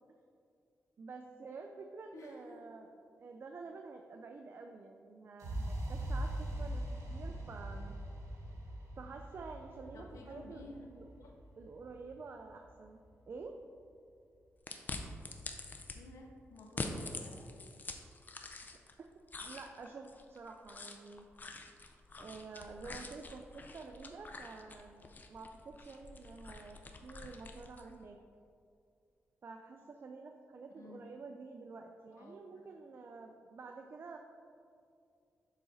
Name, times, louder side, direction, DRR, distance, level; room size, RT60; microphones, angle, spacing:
voice 1, 1.0-2.9 3.2-6.8 7.1-8.0 9.0-10.7 10.9-11.1 11.6-13.5 19.4-21.3 22.2-28.2 29.4-34.2, right 4 dB, 45° right, 4 dB, 0.4 m, -49 dB
voice 2, 2.1-2.6 7.2-7.3 9.9-10.9 11.2-11.3 15.9-17.6 30.8-31.2 32.2-32.7, left 2 dB, 90° left, 1 dB, 0.7 m, -53 dB
sound 1, 5.4-13.3, right 1 dB, 85° right, 1.1 m, -42 dB
sound 2, 14.7-16.0 16.6-18.9 19.3-27.9, left 3 dB, 35° left, 0.5 m, -46 dB
7.0 x 3.8 x 4.0 m, 2.4 s
wide cardioid pair, 110°, 5 cm